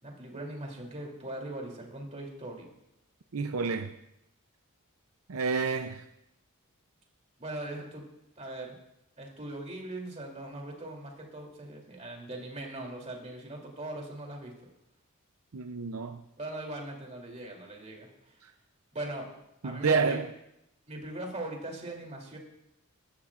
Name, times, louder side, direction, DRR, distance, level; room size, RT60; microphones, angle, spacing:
voice 1, 0.0-2.7 7.4-8.0 8.4-8.7 9.2-14.7 16.4-18.1 18.9-19.3 19.6-20.2 20.9-22.4, right 1 dB, 30° right, 3.1 m, -40 dB
voice 2, 3.3-3.9 5.3-6.0 15.5-16.2 18.4-18.5 19.6-20.3, right 4 dB, 75° right, 0.6 m, -29 dB
22.0 x 13.0 x 2.5 m
head